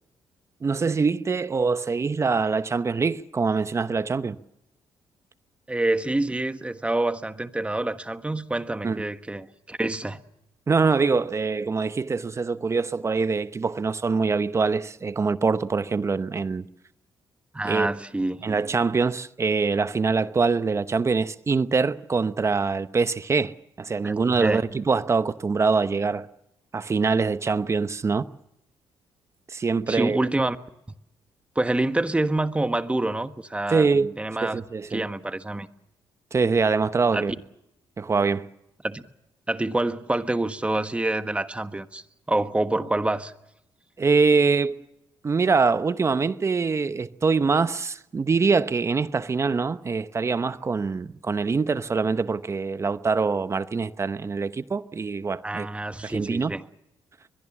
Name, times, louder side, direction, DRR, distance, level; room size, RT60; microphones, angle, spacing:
voice 1, 0.6-4.4 8.8-9.0 10.7-16.7 17.6-17.9 18.4-26.3 26.7-28.2 29.5-30.2 33.7-34.1 34.4-35.0 36.3-37.3 38.0-38.5 44.0-44.8 45.2-55.7 56.0-56.5, right 4 dB, 30° right, 0.9 m, -24 dB
voice 2, 5.7-10.2 17.5-18.4 24.0-24.6 29.9-30.6 31.5-33.9 34.2-34.6 34.9-35.7 37.1-37.2 38.8-39.1 39.5-43.3 55.4-56.6, right 2 dB, 15° right, 1.4 m, -27 dB
23.0 x 22.5 x 7.3 m
cardioid pair, 100°, 9 cm